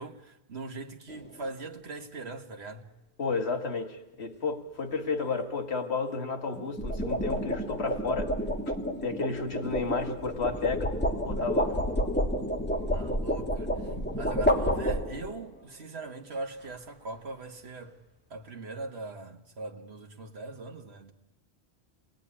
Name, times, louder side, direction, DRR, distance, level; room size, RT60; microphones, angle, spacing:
voice 1, 0.0-2.8 12.9-13.9 14.1-18.0 18.3-21.1, right 3 dB, 75° right, 1.9 m, -40 dB
sound 1, 1.1-1.4 6.5-15.4, equal, 10° left, 2.8 m, -30 dB
voice 2, 3.2-8.3 9.0-10.9 11.3-11.9, left 4 dB, 75° left, 2.0 m, -32 dB
28.5 x 20.0 x 9.9 m
omnidirectional pair, 1.1 m